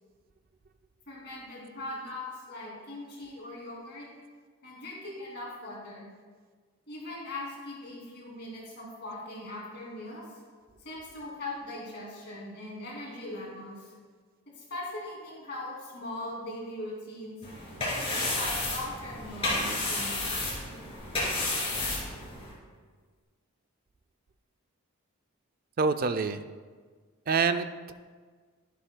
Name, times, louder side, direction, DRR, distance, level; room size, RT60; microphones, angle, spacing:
voice 1, 1.1-4.1 4.6-6.1 6.9-10.3 10.8-13.9 14.6-17.4 17.9-20.5, left 1 dB, 50° left, -4 dB, 2.6 m, -40 dB
sound 1, 17.4-22.5, left 2 dB, 25° left, 2.8 m, -31 dB
voice 2, 25.8-26.4 27.3-27.9, right 5 dB, 40° right, 11 dB, 0.3 m, -26 dB
11.0 x 11.0 x 2.2 m, 1.5 s
head